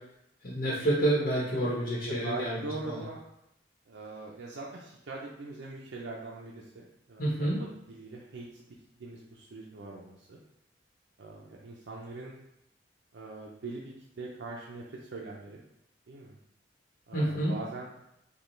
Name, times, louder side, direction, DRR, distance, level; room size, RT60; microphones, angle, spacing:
voice 1, 0.4-3.0 7.2-7.6 17.1-17.5, right 1 dB, 55° left, -5 dB, 1.0 m, -29 dB
voice 2, 2.1-3.2 3.9-7.5 7.9-8.6 9.0-10.4 11.2-12.4 13.1-15.6 16.1-16.4 17.1-17.9, right 3 dB, 80° right, -3 dB, 0.5 m, -42 dB
5.3 x 2.3 x 3.1 m, 0.81 s
head